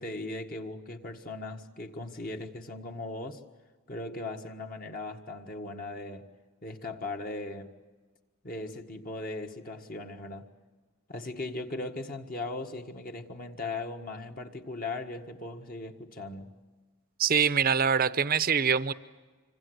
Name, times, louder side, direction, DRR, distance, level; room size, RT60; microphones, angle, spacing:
voice 1, 0.0-3.4 3.9-6.3 6.6-7.7 8.4-10.5 11.1-16.5, left 2 dB, 40° left, 1.7 m, -38 dB
voice 2, 17.2-18.9, right 7 dB, 45° right, 0.8 m, -24 dB
26.5 x 25.0 x 8.0 m
head